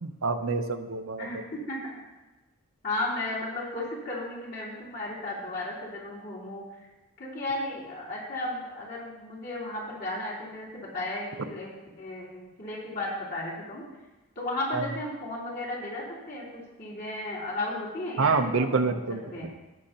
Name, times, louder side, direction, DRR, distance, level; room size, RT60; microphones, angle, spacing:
voice 1, 0.0-1.3 14.7-14.9 18.2-19.2, right 4 dB, 70° right, 7 dB, 0.7 m, -27 dB
voice 2, 1.2-2.0 2.8-6.6 7.2-11.7 12.0-13.8 14.4-16.4 16.8-19.5, left 2 dB, 45° left, -7 dB, 3.4 m, -34 dB
18.0 x 6.5 x 2.9 m, 1.1 s
head